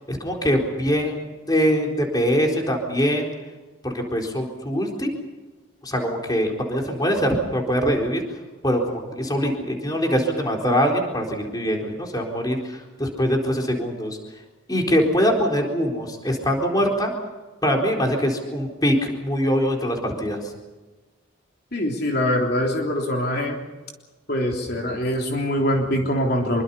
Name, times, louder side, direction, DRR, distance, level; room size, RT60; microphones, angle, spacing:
voice 1, 0.1-3.3 3.8-5.1 5.8-8.2 8.6-14.2 14.7-17.1 17.6-20.5, equal, 20° left, 1 dB, 4.2 m, -23 dB
voice 2, 21.7-23.6 24.3-26.6, equal, 50° left, 0 dB, 3.5 m, -23 dB
26.5 x 24.0 x 5.7 m, 1.2 s
head